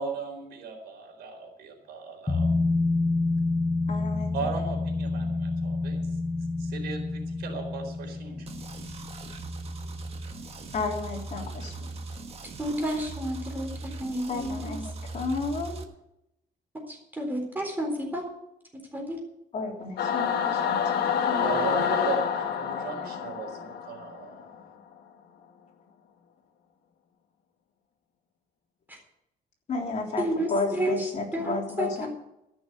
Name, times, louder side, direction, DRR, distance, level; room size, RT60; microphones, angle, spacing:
voice 1, 0.0-2.5 4.3-6.1 6.6-8.5 20.6-20.7 21.4-24.4, right 4 dB, 90° right, 2 dB, 4.1 m, -36 dB
sound 1, 2.3-11.4 11.7-11.8, left 3 dB, 10° left, 0.7 m, -29 dB
voice 2, 3.9-4.3 10.7-12.0 14.3-15.8 19.5-20.8 21.1-21.5 29.7-32.1, left 4 dB, 45° left, -1 dB, 3.5 m, -32 dB
sound 2, 8.5-15.8, right 3 dB, 40° right, 1.4 m, -39 dB
voice 3, 12.6-14.7 16.9-18.2 18.9-19.2 28.9-29.0 30.2-32.1, right 1 dB, 10° right, 1 dB, 3.9 m, -31 dB
Singing / Musical instrument, 20.0-24.6, left 7 dB, 80° left, 1.4 m, -28 dB
14.0 x 6.3 x 9.5 m, 0.85 s
cardioid pair, 140°, 16 cm